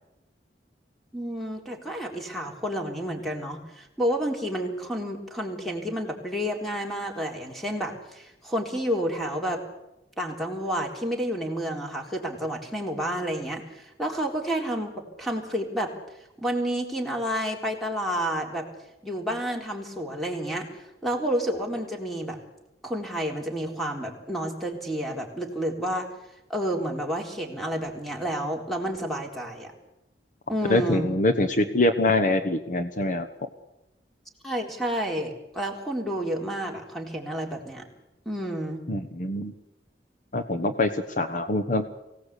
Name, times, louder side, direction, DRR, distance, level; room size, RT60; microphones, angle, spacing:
voice 1, 1.1-9.6 10.2-15.9 16.4-18.7 19.0-20.7 21.0-22.4 22.8-26.1 26.5-29.7 30.5-31.1 34.4-37.8 38.3-38.8, equal, ahead, 1 dB, 3.8 m, -30 dB
voice 2, 30.7-33.3 38.9-39.5 40.3-41.8, left 2 dB, 45° left, 8 dB, 1.2 m, -24 dB
23.5 x 17.5 x 8.4 m, 0.92 s
head